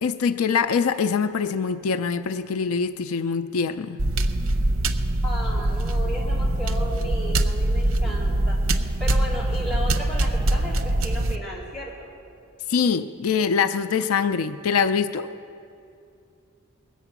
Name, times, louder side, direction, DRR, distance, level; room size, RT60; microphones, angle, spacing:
voice 1, 0.0-4.0 12.7-15.3, left 6 dB, 85° left, 10 dB, 0.4 m, -24 dB
sound 1, 4.0-11.4, right 1 dB, 65° right, 0.7 m, -23 dB
voice 2, 5.2-8.6 9.0-12.1, equal, ahead, -6 dB, 3.9 m, -34 dB
21.0 x 8.2 x 6.0 m, 2.6 s
head